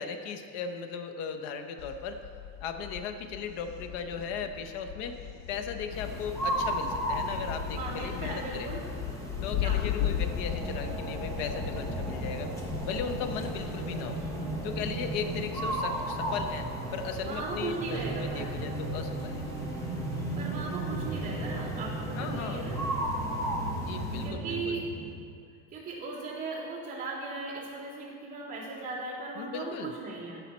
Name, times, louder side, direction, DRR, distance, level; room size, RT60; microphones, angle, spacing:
voice 1, 0.0-2.2 2.6-5.2 5.5-8.7 9.4-12.5 12.8-14.2 14.6-19.5 22.2-22.6 23.8-24.8 29.3-29.9, left 6 dB, 90° left, 7 dB, 1.0 m, -37 dB
Thunder, 1.8-19.8, left 10 dB, 55° left, 0.5 m, -38 dB
sound 1, 5.9-24.3, equal, 10° left, 1.0 m, -36 dB
voice 2, 7.8-8.8 9.6-10.2 17.2-18.5 20.4-22.9 24.2-24.9 25.7-30.4, right 3 dB, 25° right, -8 dB, 2.7 m, -37 dB
sound 2, 10.1-25.1, right 2 dB, 10° right, 1.8 m, -38 dB
15.5 x 5.7 x 4.3 m, 2.3 s
cardioid pair, 165°, 34 cm